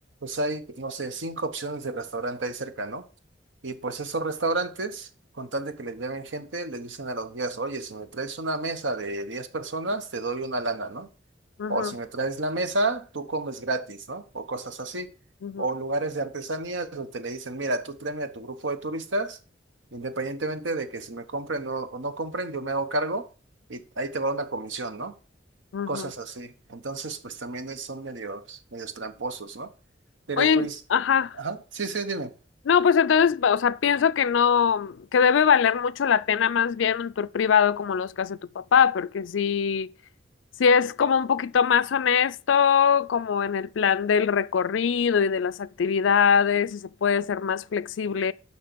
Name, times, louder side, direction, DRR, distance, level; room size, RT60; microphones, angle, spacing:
voice 1, 0.2-3.0 3.6-5.1 5.3-11.1 11.7-15.1 15.6-19.4 19.9-23.3 23.7-25.1 25.9-29.7 30.3-30.8 31.3-32.3, right 2 dB, 80° right, 1.1 m, -31 dB
voice 2, 11.6-11.9 15.4-15.6 25.7-26.1 30.4-31.4 32.7-39.9 40.6-48.3, left 7 dB, 90° left, 0.4 m, -22 dB
6.5 x 5.8 x 6.8 m
head